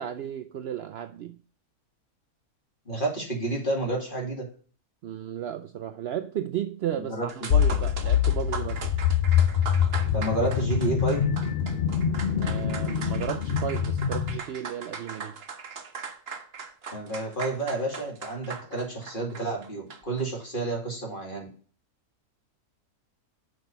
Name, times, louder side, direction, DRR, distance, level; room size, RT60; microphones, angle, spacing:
voice 1, 0.0-1.4 5.0-8.9 12.3-15.4, right 10 dB, 80° right, 0.5 m, -34 dB
voice 2, 2.9-4.5 6.9-7.3 7.7-7.8 10.1-11.2 16.9-21.5, right 2 dB, 35° left, 2.7 m, -30 dB
sound 1, 7.0-7.1 7.3-20.3, right 5 dB, 45° right, 1.0 m, -40 dB
sound 2, 7.5-14.4, left 8 dB, 60° left, 0.6 m, -25 dB
6.1 x 5.2 x 6.7 m
omnidirectional pair, 1.6 m